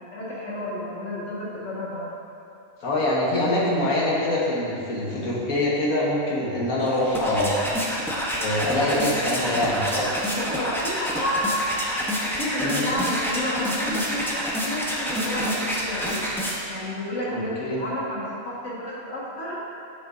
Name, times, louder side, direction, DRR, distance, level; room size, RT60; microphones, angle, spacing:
voice 1, 0.0-2.1 3.3-4.3 10.3-11.5 12.4-16.1 16.7-19.6, left 1 dB, 60° left, -6 dB, 1.8 m, -31 dB
voice 2, 2.8-7.6 8.4-10.1 12.6-12.8 17.3-17.8, left 1 dB, 85° left, -5 dB, 1.8 m, -24 dB
sound 1, 6.8-16.9, equal, ahead, 0.6 m, -28 dB
10.0 x 6.4 x 2.6 m, 2.6 s
omnidirectional pair, 1.5 m